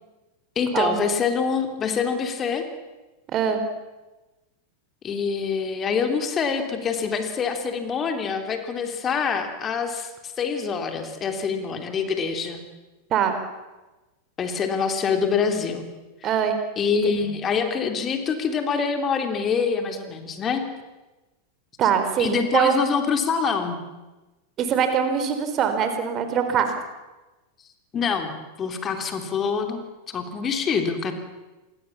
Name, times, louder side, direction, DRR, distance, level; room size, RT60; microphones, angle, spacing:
voice 1, 0.5-2.6 5.0-12.6 14.4-15.8 16.8-20.6 22.2-23.8 27.9-28.3 28.6-31.1, left 6 dB, 25° left, 6 dB, 3.2 m, -25 dB
voice 2, 3.3-3.6 13.1-13.3 16.2-16.6 21.8-22.8 24.6-26.7, right 8 dB, 30° right, 8 dB, 4.1 m, -22 dB
28.0 x 21.0 x 7.3 m, 1.1 s
figure-of-eight pair, 90°, 0 cm